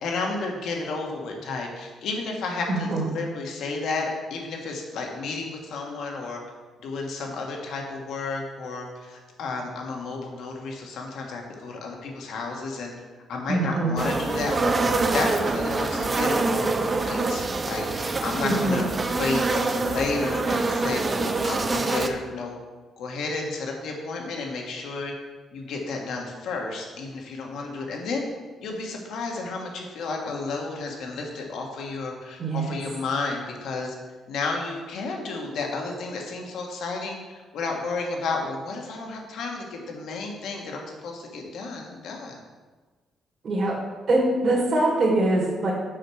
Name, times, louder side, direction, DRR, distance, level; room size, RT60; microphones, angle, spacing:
voice 1, 0.0-6.4 6.8-12.9 13.3-14.7 15.1-22.6 23.0-25.1 25.5-28.3 28.6-33.9 34.3-42.4, left 3 dB, 75° left, 1 dB, 1.4 m, -32 dB
voice 2, 2.7-3.1 13.5-14.0 18.4-18.9 32.4-32.8 43.4-43.7 44.1-45.7, right 2 dB, 55° right, -4 dB, 1.8 m, -23 dB
sound 1, 14.0-22.1, right 3 dB, 30° right, 0.7 m, -25 dB
6.4 x 4.4 x 6.2 m, 1.3 s
cardioid pair, 90°, 0 cm